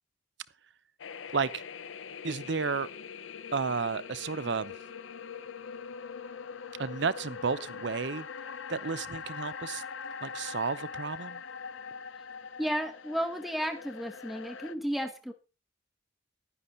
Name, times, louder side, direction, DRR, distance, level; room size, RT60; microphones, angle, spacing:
sound 1, 1.0-14.7, left 6 dB, 85° left, 0.7 m, -42 dB
voice 1, 2.2-2.9 3.5-4.7 6.8-8.3 8.7-9.8 10.2-11.4, right 5 dB, 65° right, 0.7 m, -32 dB
voice 2, 12.6-15.3, equal, ahead, 1.0 m, -33 dB
11.5 x 9.9 x 4.0 m
head